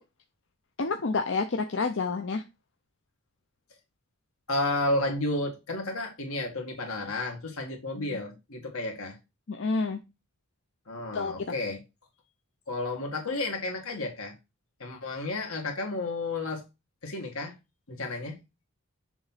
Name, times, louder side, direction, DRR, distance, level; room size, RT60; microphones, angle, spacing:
voice 1, 0.8-2.4 8.0-8.1 9.5-10.0 11.1-11.3, left 4 dB, 55° left, 0.5 m, -29 dB
voice 2, 4.5-9.2 10.9-11.8 12.7-14.3 14.8-16.6 17.0-17.5 17.9-18.4, left 2 dB, 80° left, 1.9 m, -32 dB
6.9 x 2.9 x 5.5 m
head